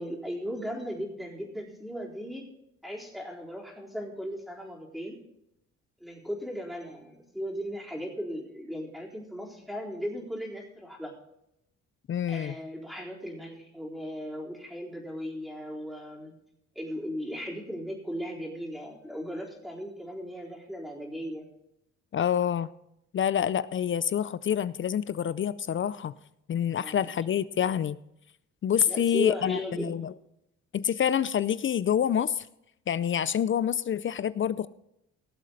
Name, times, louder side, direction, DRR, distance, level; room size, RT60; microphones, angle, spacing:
voice 1, 0.0-2.4 2.8-5.2 6.0-11.1 12.3-16.3 16.8-21.5 26.7-27.1 28.9-30.0, equal, ahead, -2 dB, 4.0 m, -37 dB
voice 2, 12.1-12.5 22.1-22.7 23.1-26.1 26.5-28.0 28.6-30.1 30.7-32.5 32.9-34.7, left 9 dB, 40° left, 17 dB, 0.5 m, -27 dB
18.5 x 7.6 x 4.0 m, 0.81 s
cardioid pair, 90°, 30 cm